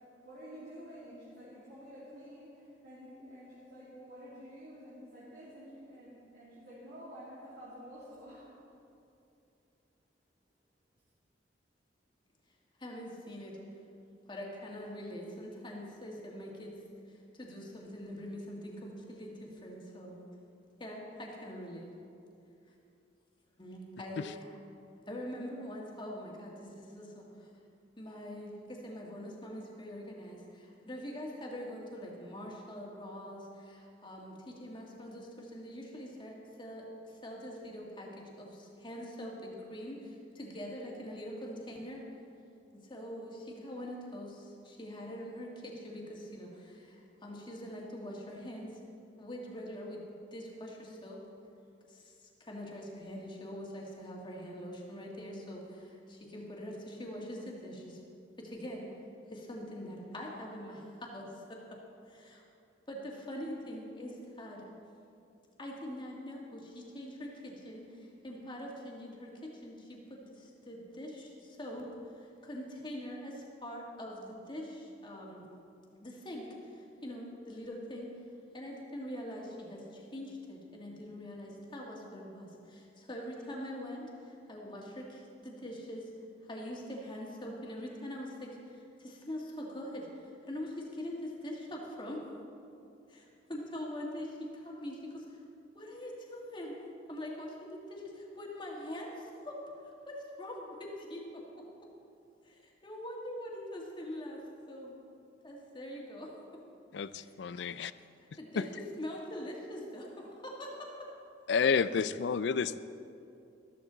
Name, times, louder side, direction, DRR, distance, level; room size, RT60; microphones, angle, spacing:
voice 1, 0.0-8.5, equal, 65° right, -10 dB, 2.9 m, -50 dB
voice 2, 12.8-13.6 14.3-16.7 17.1-20.3 20.8-21.9 23.6-24.6 25.1-27.5 28.0-42.1 42.7-48.8 49.2-50.0 50.3-51.2 51.9-58.0 58.4-58.9 59.3-61.8 62.1-62.4 62.9-64.7 65.6-75.5 76.0-78.2 78.5-86.1 86.4-92.2 93.1-95.4 95.7-96.7 97.1-99.6 100.1-101.6 102.4-105.0 105.4-106.6 107.5-107.7 108.4-111.1, equal, 25° left, -2 dB, 2.0 m, -43 dB
voice 3, 106.9-107.9 108.6-108.7 111.5-112.8, left 5 dB, 70° left, 15 dB, 0.4 m, -30 dB
13.5 x 13.0 x 4.0 m, 2.6 s
head